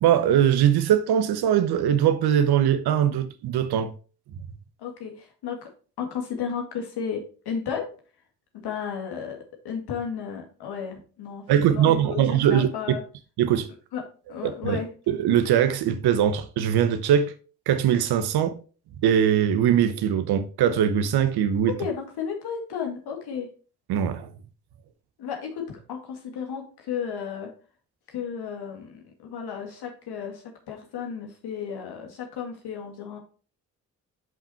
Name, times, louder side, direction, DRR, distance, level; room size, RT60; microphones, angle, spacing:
voice 1, 0.0-3.9 11.5-12.7 13.4-13.7 14.4-14.8 15.1-17.3 17.7-18.6 19.0-21.7 23.9-24.3, right 9 dB, 70° right, 0.9 m, -21 dB
voice 2, 4.8-5.7 6.0-7.9 8.5-13.0 13.9-14.0 14.3-14.9 21.7-23.5 25.2-27.5 28.1-33.2, left 7 dB, 70° left, 2.2 m, -33 dB
6.1 x 5.7 x 4.4 m
hypercardioid pair, 40°, 40 cm